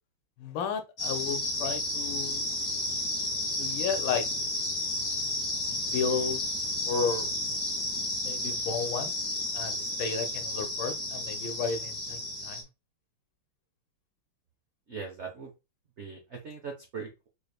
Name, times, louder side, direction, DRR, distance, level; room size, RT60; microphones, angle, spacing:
voice 1, 0.4-2.5 3.6-4.2 5.8-6.4 6.9-7.3 8.2-9.1 9.5-12.6, left 5 dB, 75° left, 1.5 m, -33 dB
sound 1, 1.0-12.6, left 1 dB, 55° left, 1.0 m, -32 dB
voice 2, 14.9-15.5 16.0-17.3, right 5 dB, 90° right, 0.6 m, -40 dB
4.5 x 3.3 x 2.2 m
omnidirectional pair, 2.3 m